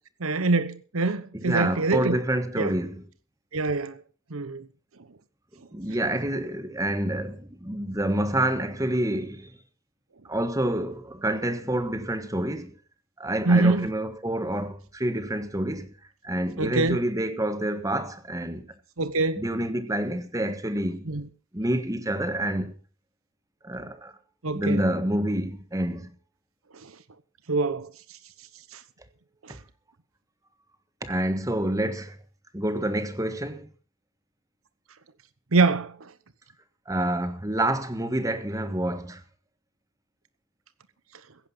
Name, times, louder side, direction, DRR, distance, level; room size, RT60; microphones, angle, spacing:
voice 1, 0.2-2.2 2.6-2.7 3.5-4.0 4.3-4.6 13.5-13.9 16.6-17.0 19.0-19.5 21.1-21.2 24.4-24.8 26.8-26.9 27.5-27.9 28.7-28.8 29.4-29.5 35.5-36.1, right 3 dB, 85° right, 1.1 m, -24 dB
voice 2, 1.3-3.0 5.7-9.5 10.2-12.7 13.2-15.9 16.2-18.7 19.4-21.1 21.5-22.7 23.6-24.1 24.5-26.1 31.0-32.2 32.5-33.7 36.9-39.2, right 1 dB, 15° right, 1.5 m, -28 dB
15.5 x 10.5 x 5.6 m
head